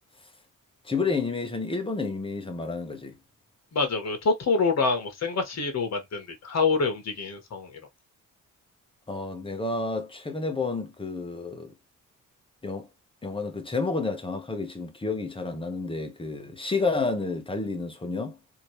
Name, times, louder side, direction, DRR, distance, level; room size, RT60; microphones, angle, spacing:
voice 1, 0.8-3.2 9.1-11.7 12.6-12.9 13.2-18.4, left 3 dB, 15° left, 1.1 m, -30 dB
voice 2, 3.7-7.8, left 4 dB, 50° left, 1.6 m, -26 dB
3.7 x 2.8 x 3.1 m
wide cardioid pair, 130°, 33 cm